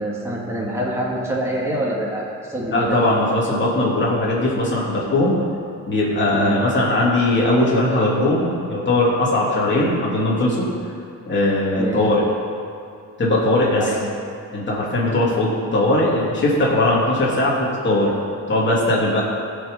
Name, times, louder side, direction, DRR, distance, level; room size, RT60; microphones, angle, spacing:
voice 1, 0.0-3.0 6.3-6.6 11.7-12.0 13.8-14.2, right 1 dB, 10° right, -5 dB, 2.3 m, -25 dB
voice 2, 2.7-5.4 5.9-10.7 11.2-12.2 13.2-13.9 14.5-18.1 18.5-19.2, left 1 dB, 40° left, -6 dB, 3.1 m, -19 dB
16.5 x 6.0 x 5.6 m, 2.4 s
cardioid pair, 90°, 30 cm